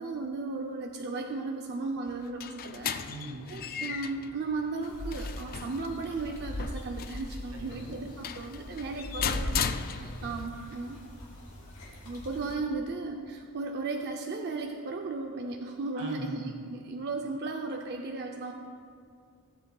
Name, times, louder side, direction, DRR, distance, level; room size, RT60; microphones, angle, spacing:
voice 1, 0.0-3.0 3.5-11.0 12.0-18.5, right 3 dB, 50° right, 2 dB, 0.5 m, -35 dB
sound 1, 2.1-10.5, left 8 dB, 40° left, 0.3 m, -37 dB
voice 2, 3.1-3.7 7.5-7.9 10.0-10.4 15.9-16.6, right 1 dB, 85° right, -1 dB, 2.1 m, -42 dB
sound 2, 4.8-12.5, left 1 dB, 80° left, 2.3 m, -40 dB
18.0 x 8.1 x 2.3 m, 2.2 s
head